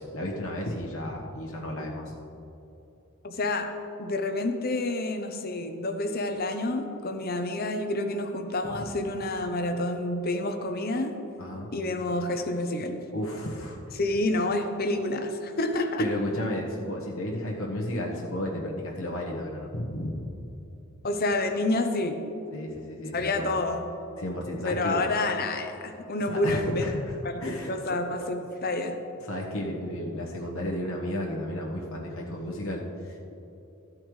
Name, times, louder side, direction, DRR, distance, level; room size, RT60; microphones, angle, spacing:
voice 1, 0.1-2.1 8.6-8.9 11.4-11.7 13.1-14.0 16.0-20.1 22.5-23.5 24.2-25.0 26.3-28.0 29.2-33.3, left 1 dB, 65° left, -2 dB, 1.2 m, -33 dB
voice 2, 3.2-3.7 4.0-11.1 11.7-13.0 14.0-16.1 21.0-22.2 23.1-23.8 24.6-26.9 27.2-29.0, left 2 dB, 45° left, 6 dB, 0.7 m, -28 dB
13.5 x 8.5 x 3.2 m, 2.9 s
head